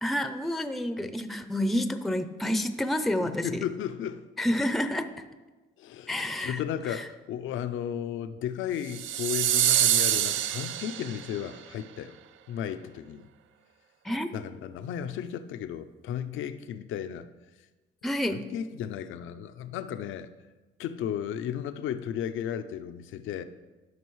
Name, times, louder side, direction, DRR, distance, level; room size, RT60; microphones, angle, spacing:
voice 1, 0.0-3.6 4.4-5.1 6.1-6.6 6.9-7.1 14.0-14.3 18.0-18.4, left 1 dB, ahead, 9 dB, 0.5 m, -29 dB
voice 2, 3.4-4.2 5.8-12.2 12.5-13.3 14.3-17.3 18.3-20.3 20.8-23.4, left 9 dB, 80° left, 11 dB, 0.5 m, -34 dB
sound 1, 8.9-11.4, right 11 dB, 80° right, 0.4 m, -25 dB
12.5 x 5.4 x 3.1 m, 1.2 s
cardioid pair, 90°, 20 cm